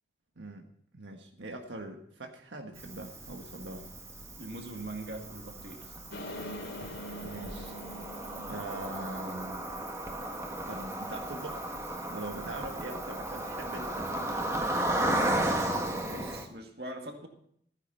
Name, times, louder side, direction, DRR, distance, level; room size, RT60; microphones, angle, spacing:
voice 1, 0.4-0.7 0.9-3.9 6.8-7.7 8.5-9.7 10.7-11.6 12.1-14.6, right 2 dB, 90° right, 3 dB, 1.5 m, -42 dB
Cricket, 2.8-16.4, right 1 dB, 15° right, 1.4 m, -35 dB
voice 2, 4.4-6.0 15.9-17.3, right 1 dB, 60° right, 3 dB, 2.1 m, -42 dB
sound 1, 6.1-10.6 11.0-11.1 11.4-11.5, equal, 70° left, 3.0 m, -44 dB
14.5 x 9.8 x 5.5 m, 0.66 s
head